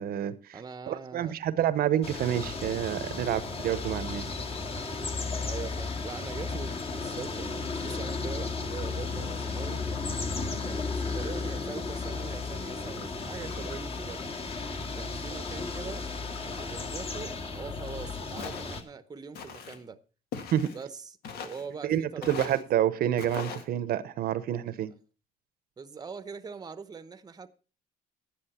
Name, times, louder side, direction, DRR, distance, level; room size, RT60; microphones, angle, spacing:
voice 1, 0.0-4.3 20.5-20.7 21.8-24.9, right 11 dB, 65° right, 0.9 m, -28 dB
voice 2, 0.5-1.4 5.4-9.8 10.6-14.2 15.0-16.1 16.4-20.0 20.7-22.5 25.8-27.5, right 5 dB, 25° right, 0.9 m, -42 dB
sound 1, 2.0-18.8, left 3 dB, 35° left, 2.1 m, -34 dB
Walk footsteps, 18.4-18.8 19.3-19.8 20.3-20.8 21.2-21.7 22.2-22.6 23.2-23.6, left 6 dB, 70° left, 1.9 m, -40 dB
12.0 x 10.0 x 4.3 m
cardioid pair, 110°, 17 cm